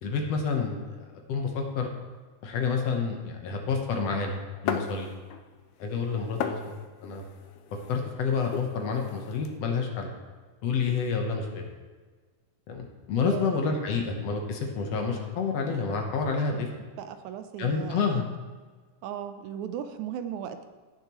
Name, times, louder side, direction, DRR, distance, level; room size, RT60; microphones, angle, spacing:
voice 1, 0.0-1.9 2.4-4.4 4.6-5.1 5.8-6.8 7.0-7.3 7.9-10.1 10.6-11.6 12.7-16.7 17.6-18.2, left 5 dB, 65° left, 2 dB, 2.0 m, -29 dB
sound 1, 4.7-5.5 5.8-9.5, left 7 dB, 90° left, 2.1 m, -36 dB
voice 2, 13.2-13.6 16.5-16.6 17.0-18.2 19.0-20.6, right 9 dB, 90° right, 9 dB, 2.0 m, -37 dB
16.5 x 6.5 x 3.1 m, 1.4 s
omnidirectional pair, 3.4 m